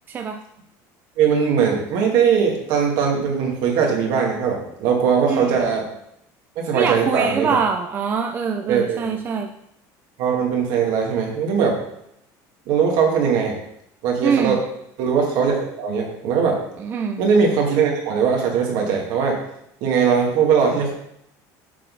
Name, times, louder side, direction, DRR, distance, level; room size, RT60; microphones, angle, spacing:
voice 1, 0.1-0.4 5.3-5.7 6.7-9.5 14.2-14.6 16.8-17.2, right 6 dB, 25° right, 4 dB, 0.4 m, -24 dB
voice 2, 1.2-5.8 6.6-7.6 8.7-9.1 10.2-11.8 12.7-13.6 14.0-14.6 15.0-16.6 17.2-19.4 19.8-20.9, right 6 dB, 60° right, 0 dB, 2.1 m, -20 dB
7.5 x 4.1 x 5.3 m, 0.75 s
cardioid pair, 165°, 8 cm